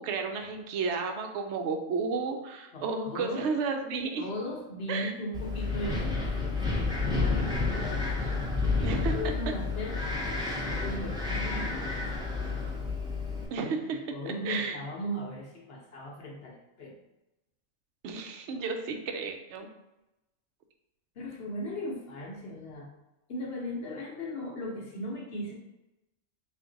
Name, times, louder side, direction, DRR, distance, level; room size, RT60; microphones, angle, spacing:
voice 1, 0.0-4.2 4.9-5.1 8.8-9.3 13.5-14.0 14.5-14.8 18.0-19.7, right 4 dB, 65° right, 5 dB, 0.8 m, -32 dB
voice 2, 2.7-3.5 4.2-8.0 8.6-10.0 10.7-12.7 14.1-16.9 21.2-22.9 23.3-25.5, left 1 dB, 55° left, -1 dB, 0.8 m, -38 dB
Wind, 5.3-13.5, left 3 dB, 5° right, 0.6 m, -30 dB
3.6 x 2.5 x 3.8 m, 0.94 s
omnidirectional pair, 1.4 m